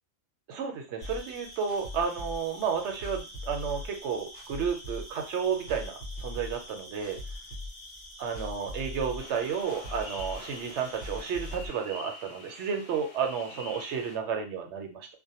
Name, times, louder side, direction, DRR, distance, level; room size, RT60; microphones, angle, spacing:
voice 1, 0.5-7.2 8.2-15.1, right 6 dB, 70° right, 4 dB, 0.9 m, -32 dB
sound 1, 1.0-11.7, left 1 dB, 70° left, 1.2 m, -41 dB
sound 2, 1.0-11.5, left 1 dB, 25° left, 0.9 m, -48 dB
sound 3, 9.2-14.2, left 2 dB, 90° left, 1.1 m, -46 dB
2.5 x 2.2 x 2.8 m, 0.30 s
omnidirectional pair, 1.3 m